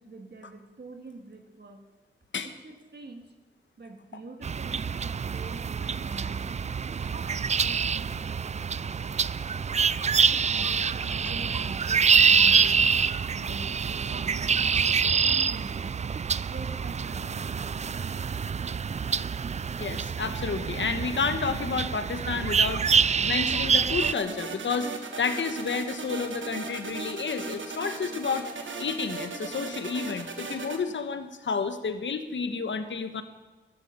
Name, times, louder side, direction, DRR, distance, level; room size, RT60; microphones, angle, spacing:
voice 1, 0.0-1.8 2.4-3.3 3.8-6.7 7.0-9.7 10.3-12.9 13.3-16.0 16.5-18.0, right 3 dB, 60° right, 3 dB, 2.3 m, -45 dB
sound 1, 4.4-24.1, right 6 dB, 35° right, 0.3 m, -26 dB
voice 2, 19.8-22.8 23.2-24.9 25.2-28.5 28.8-33.2, left 5 dB, 75° left, 9 dB, 1.3 m, -30 dB
sound 2, 24.0-30.8, right 4 dB, 80° right, 1.5 m, -37 dB
13.0 x 11.5 x 6.9 m, 1.1 s
cardioid pair, 50°, 19 cm